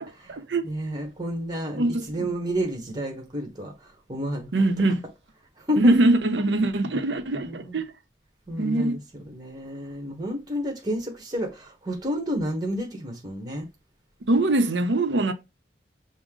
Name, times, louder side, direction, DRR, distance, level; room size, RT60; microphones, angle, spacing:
voice 1, 0.0-0.7 1.8-2.3 4.5-5.0 5.8-7.9 8.6-9.0 14.3-15.3, right 2 dB, 90° right, 0.7 m, -22 dB
voice 2, 0.6-4.5 5.6-6.0 7.4-7.8 8.5-9.0 9.3-13.7, equal, 25° right, 1.1 m, -30 dB
6.2 x 2.1 x 3.6 m
head